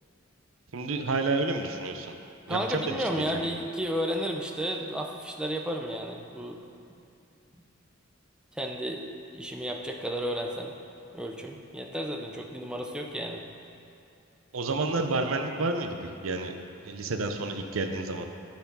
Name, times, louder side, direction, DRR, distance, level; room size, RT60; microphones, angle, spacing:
voice 1, 0.7-2.1 2.5-3.5 14.5-16.5 16.8-18.3, right 3 dB, 85° right, 6 dB, 0.7 m, -30 dB
voice 2, 2.5-6.6 8.6-9.0 9.3-10.7 11.1-13.4, equal, 5° right, 1 dB, 0.5 m, -32 dB
11.5 x 4.5 x 5.4 m, 2.6 s
head